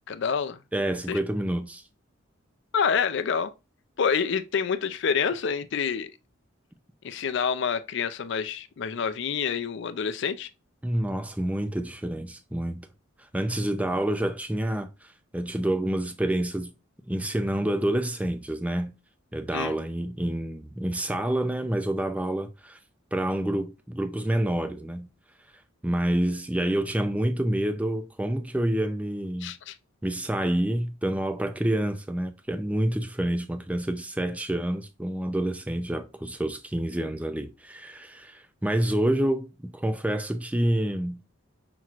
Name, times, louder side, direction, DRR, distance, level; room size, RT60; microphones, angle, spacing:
voice 1, 0.1-0.6 1.1-1.2 2.7-3.5 4.0-6.1 7.0-10.5 19.5-19.7 29.4-29.8, left 6 dB, 60° left, 0.4 m, -27 dB
voice 2, 0.7-1.8 10.8-12.9 13.3-14.9 15.3-16.7 17.1-19.0 19.3-22.8 23.1-25.1 25.8-29.6 30.0-41.2, right 1 dB, 5° right, 0.4 m, -28 dB
5.9 x 3.0 x 2.4 m
head